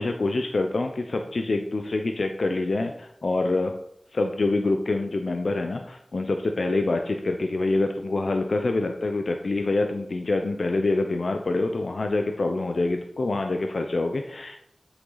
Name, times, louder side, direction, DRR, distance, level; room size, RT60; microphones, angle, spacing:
voice 1, 0.0-3.7 4.1-14.6, left 2 dB, 70° left, 4 dB, 0.7 m, -26 dB
8.1 x 6.4 x 4.0 m, 0.71 s
wide cardioid pair, 65°, 0 cm